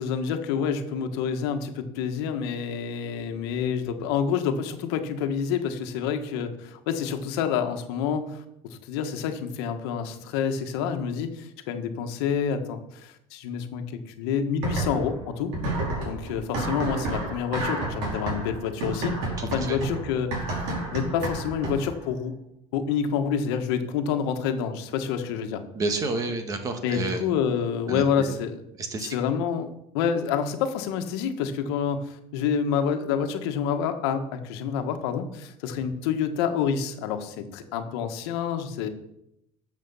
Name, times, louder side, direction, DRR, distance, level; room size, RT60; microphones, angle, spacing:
voice 1, 0.0-8.4 8.7-15.5 16.0-22.3 22.7-25.6 26.8-28.6 29.0-29.7 29.9-38.9, left 7 dB, 85° left, 7 dB, 1.5 m, -28 dB
sound 1, 14.6-15.2 15.5-22.0, right 2 dB, 65° right, 4.7 m, -30 dB
voice 2, 19.4-19.8 25.7-27.2 27.9-28.4 28.8-29.1, right 3 dB, 25° right, 6 dB, 1.6 m, -30 dB
13.0 x 7.4 x 5.6 m, 0.80 s
cardioid pair, 160°, 13 cm